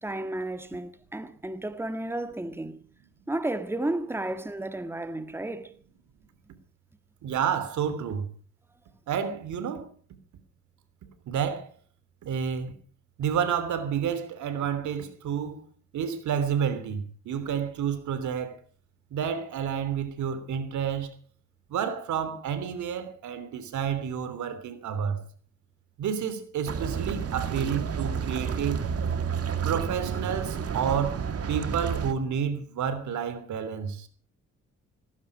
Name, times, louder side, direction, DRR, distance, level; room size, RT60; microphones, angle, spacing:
voice 1, 0.0-2.8 3.3-5.7, right 1 dB, 10° right, 1.7 m, -32 dB
voice 2, 7.2-8.3 9.1-9.9 11.3-11.7 12.2-12.7 13.2-15.7 15.9-18.6 19.1-21.2 21.7-25.2 26.0-28.8 29.6-34.1, right 7 dB, 80° right, 3.2 m, -30 dB
sound 1, 26.7-32.1, right 6 dB, 55° right, 2.0 m, -30 dB
18.5 x 15.5 x 5.0 m
cardioid pair, 75°, 29 cm